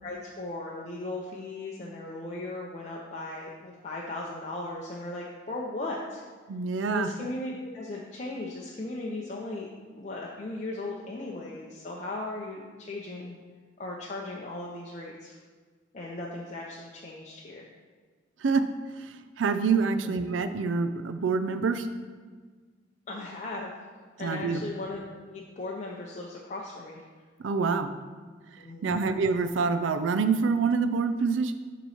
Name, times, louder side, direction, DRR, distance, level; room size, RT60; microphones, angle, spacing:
voice 1, 0.0-6.2 6.9-9.7 9.9-13.4 13.8-15.4 15.9-17.7 20.0-20.1 23.1-23.9 24.2-27.1 28.6-29.1, left 2 dB, 40° left, -3 dB, 0.6 m, -37 dB
voice 2, 6.5-7.1 18.4-18.6 19.4-21.9 24.2-24.6 27.4-27.9 28.8-31.5, right 4 dB, 80° right, 10 dB, 0.4 m, -26 dB
6.8 x 3.0 x 5.6 m, 1.5 s
head